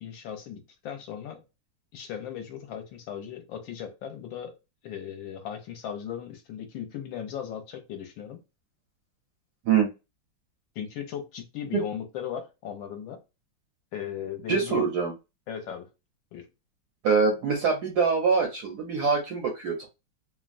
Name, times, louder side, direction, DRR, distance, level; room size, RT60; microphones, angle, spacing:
voice 1, 0.0-1.4 1.9-4.6 4.8-8.4 10.8-13.2 13.9-14.9 15.5-15.9 16.3-16.5, left 9 dB, 70° left, 1.3 m, -37 dB
voice 2, 14.5-15.1 17.0-19.9, right 5 dB, 70° right, 0.9 m, -24 dB
3.2 x 2.1 x 2.4 m
omnidirectional pair, 2.3 m